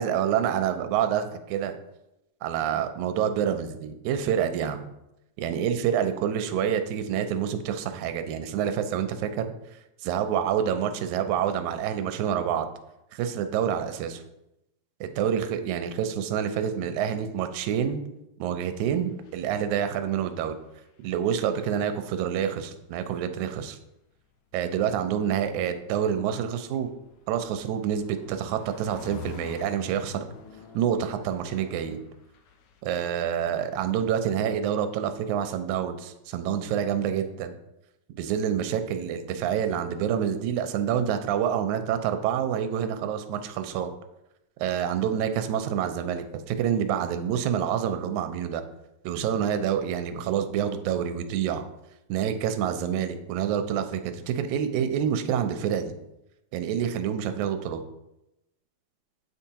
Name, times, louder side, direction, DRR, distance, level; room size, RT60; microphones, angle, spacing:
voice 1, 0.0-1.8 2.4-4.9 5.4-9.5 10.0-12.7 13.1-14.2 15.0-18.0 18.4-20.6 21.0-23.8 24.5-26.9 27.3-30.3 30.7-32.0 32.8-37.5 38.2-43.9 44.6-48.6 49.0-51.6 52.1-55.9 56.5-57.8, right 9 dB, 90° right, 8 dB, 2.0 m, -27 dB
sound 1, 18.8-20.7 21.0-22.3 23.3-23.5 25.6-32.8, left 6 dB, 80° left, 1.4 m, -47 dB
8.4 x 4.5 x 2.8 m, 0.89 s
omnidirectional pair, 3.3 m